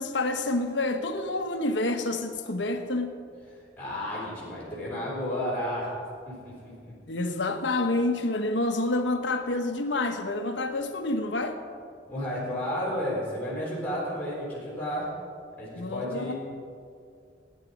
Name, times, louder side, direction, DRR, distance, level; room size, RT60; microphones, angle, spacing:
voice 1, 0.0-3.1 7.1-11.6 15.7-16.3, left 2 dB, 80° left, 6 dB, 1.2 m, -28 dB
voice 2, 3.8-5.9 6.3-6.9 12.1-15.1 15.6-16.3, left 1 dB, 10° left, -9 dB, 4.2 m, -32 dB
17.5 x 9.8 x 5.2 m, 2.3 s
head